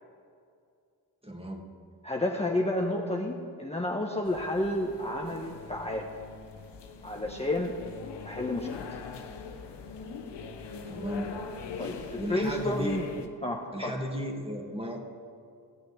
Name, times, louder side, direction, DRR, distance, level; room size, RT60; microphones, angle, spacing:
voice 1, 1.2-1.6 10.9-11.3 12.1-13.0 13.7-15.0, equal, 15° right, 2 dB, 2.5 m, -34 dB
voice 2, 2.0-6.1 7.0-7.8 8.2-8.9 11.8-13.1 13.4-14.0, left 1 dB, 15° left, -1 dB, 1.6 m, -31 dB
sound 1, 4.2-13.3, left 5 dB, 70° left, 1.3 m, -42 dB
16.5 x 6.5 x 8.2 m, 2.3 s
supercardioid pair, 45°, 43 cm